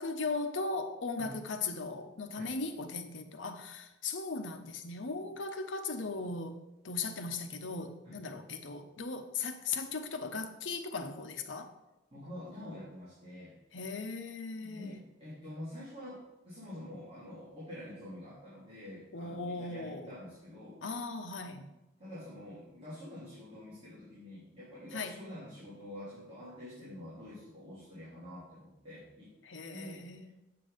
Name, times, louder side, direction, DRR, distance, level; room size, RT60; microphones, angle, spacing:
voice 1, 0.0-11.7 13.7-15.0 19.1-20.1 20.8-21.6 24.9-25.2 29.4-30.3, left 4 dB, 75° left, 7 dB, 0.9 m, -38 dB
voice 2, 12.1-13.5 14.6-20.8 21.4-21.7 22.0-29.3 29.7-30.0, left 1 dB, 30° right, -10 dB, 3.1 m, -47 dB
8.4 x 6.0 x 5.2 m, 0.98 s
head